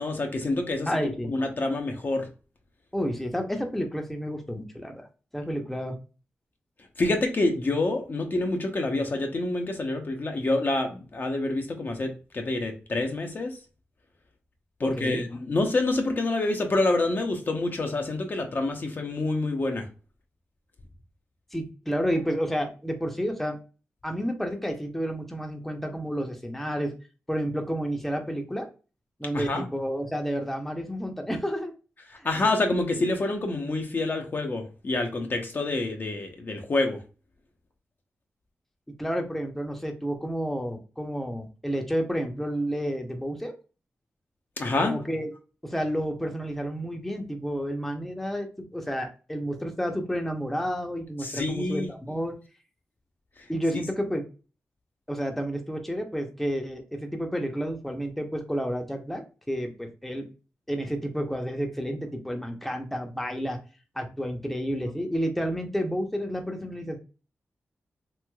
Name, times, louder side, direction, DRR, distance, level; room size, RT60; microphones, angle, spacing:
voice 1, 0.0-2.3 7.0-13.6 14.8-19.9 29.3-29.6 32.1-37.0 44.6-45.0 51.2-51.9 53.7-53.8, left 2 dB, 45° left, 0.6 m, -27 dB
voice 2, 0.9-1.3 2.9-5.1 5.3-6.0 14.8-15.2 21.5-23.6 24.0-26.9 27.3-28.7 29.2-31.7 32.2-32.3 39.0-43.5 44.8-45.3 45.6-52.3 53.5-54.2 55.1-59.2 59.5-60.2 60.7-63.6 63.9-67.0, equal, 5° left, 0.6 m, -30 dB
3.1 x 2.9 x 2.2 m
cardioid pair, 60°, 5 cm